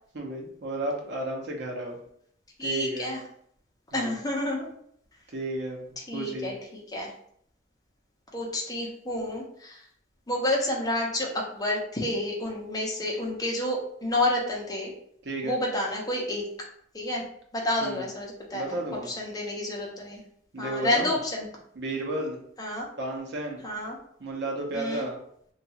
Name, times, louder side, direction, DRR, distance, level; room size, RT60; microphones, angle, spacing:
voice 1, 0.1-2.0 2.6-3.1 3.9-4.2 5.3-5.8 6.1-6.5 15.2-15.6 17.8-18.1 18.5-19.1 20.5-21.2 21.7-22.4 23.0-23.6 24.2-25.2, right 2 dB, 65° right, 0 dB, 0.7 m, -32 dB
voice 2, 2.6-3.2 3.9-4.7 6.1-6.5 6.9-7.1 8.3-9.8 10.3-14.9 15.4-16.5 16.9-17.2 17.5-18.8 19.1-20.2 20.6-21.5 22.6-22.9 23.6-24.0 24.7-25.1, left 1 dB, 20° left, -2 dB, 0.7 m, -29 dB
2.8 x 2.3 x 2.8 m, 0.67 s
head